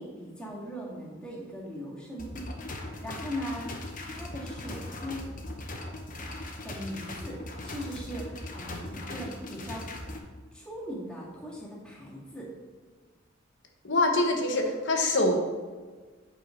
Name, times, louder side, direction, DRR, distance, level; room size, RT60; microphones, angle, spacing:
voice 1, 0.0-2.5 3.0-5.3 6.6-9.9 10.5-12.5, equal, 5° left, -5 dB, 1.9 m, -39 dB
sound 1, 2.2-10.2, left 1 dB, 40° left, 0.9 m, -39 dB
voice 2, 13.8-15.5, left 2 dB, 60° left, 3 dB, 1.2 m, -25 dB
8.0 x 4.5 x 5.1 m, 1.4 s
head